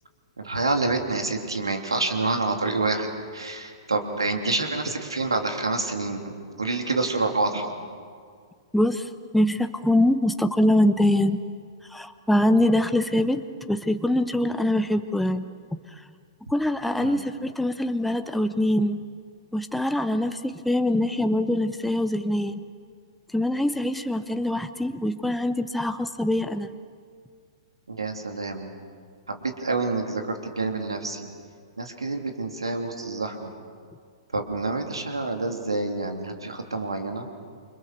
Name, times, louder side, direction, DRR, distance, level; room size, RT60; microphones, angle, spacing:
voice 1, 0.4-7.8 17.0-17.2 27.9-28.7 29.3-31.3 31.8-33.5 34.3-37.3, right 3 dB, 80° right, 4 dB, 3.2 m, -28 dB
voice 2, 8.7-11.4 11.9-13.4 13.7-15.4 16.5-19.0 19.5-22.6 23.3-26.7, left 1 dB, 5° left, 9 dB, 1.0 m, -23 dB
29.0 x 25.5 x 6.8 m, 2.1 s
figure-of-eight pair, 110°, 3 cm